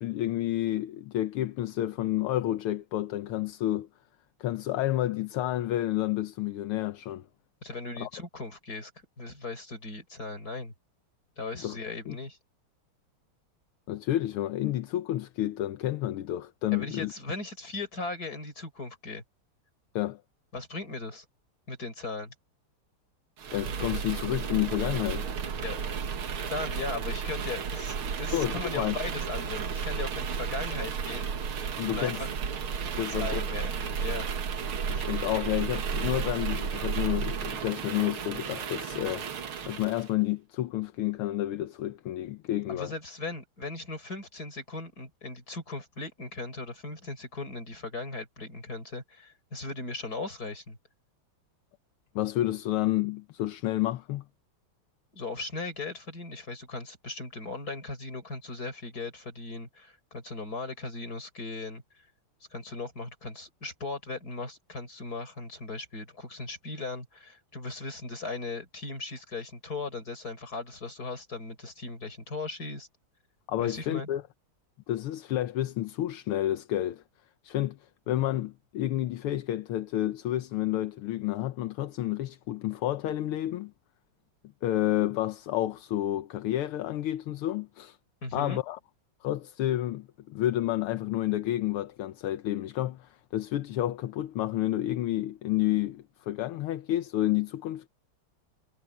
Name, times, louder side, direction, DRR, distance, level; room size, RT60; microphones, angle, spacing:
voice 1, 0.0-3.9 4.4-7.2 8.0-8.1 11.6-11.8 12.1-12.2 13.9-17.1 19.9-20.2 23.5-25.2 28.3-28.9 31.8-32.2 33.0-33.5 34.9-39.3 39.7-42.9 52.1-54.2 73.5-74.2 74.9-77.0 77.4-77.8 78.1-83.7 84.6-88.0 88.3-88.8 89.2-97.9, left 14 dB, 80° left, 1.7 m, -30 dB
voice 2, 7.6-8.9 9.2-10.7 11.4-12.4 16.7-19.2 20.5-21.2 21.7-22.3 25.6-25.8 26.5-31.3 31.9-32.3 32.9-34.3 42.7-50.8 55.1-61.8 62.5-72.9 73.6-74.1 88.2-88.6, left 3 dB, 40° left, 6.1 m, -38 dB
sound 1, 23.4-40.1, right 6 dB, 70° right, 2.5 m, -33 dB
omnidirectional pair, 2.4 m